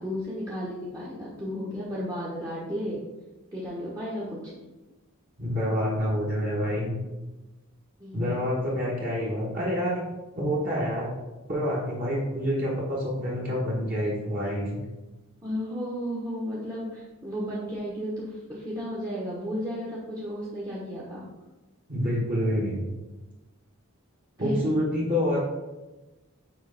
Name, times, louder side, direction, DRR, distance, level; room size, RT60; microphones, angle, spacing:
voice 1, 0.0-3.0 3.5-4.4 8.0-8.2 15.4-21.3 24.4-24.6, equal, 15° right, -7 dB, 0.9 m, -33 dB
voice 2, 5.4-6.9 8.1-10.0 10.4-11.1 11.5-14.8 21.9-22.8 24.4-25.4, equal, 40° right, -5 dB, 1.2 m, -27 dB
6.2 x 4.7 x 3.4 m, 1.1 s
head